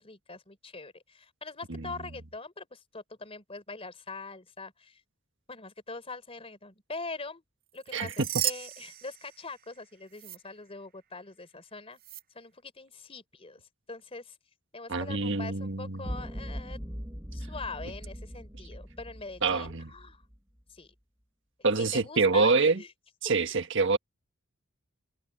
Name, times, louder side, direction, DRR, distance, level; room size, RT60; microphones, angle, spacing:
voice 1, 0.0-5.0 5.5-7.4 7.7-12.0 12.3-13.6 13.9-14.4 14.7-16.8 17.3-20.2 20.7-20.9 21.9-22.9, left 3 dB, 25° left, 3.7 m, -43 dB
sound 1, 7.8-9.8 10.1-10.4 12.0-12.2, right 12 dB, 45° right, 0.8 m, -35 dB
voice 2, 14.9-16.0 19.4-19.9 21.6-22.8 23.2-24.0, right 4 dB, 60° right, 1.5 m, -26 dB
sound 2, 16.0-20.4, equal, 10° right, 7.4 m, -40 dB
head